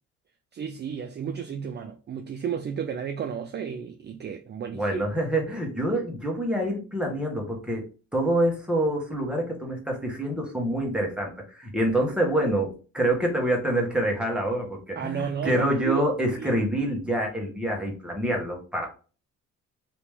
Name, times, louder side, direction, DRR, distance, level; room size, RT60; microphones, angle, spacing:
voice 1, 0.5-5.0 14.9-16.0 16.4-16.5, right 7 dB, 35° right, 0.4 m, -32 dB
voice 2, 4.7-7.8 8.1-18.9, right 1 dB, 5° right, 1.3 m, -26 dB
3.1 x 2.9 x 3.5 m
cardioid pair, 90°, 30 cm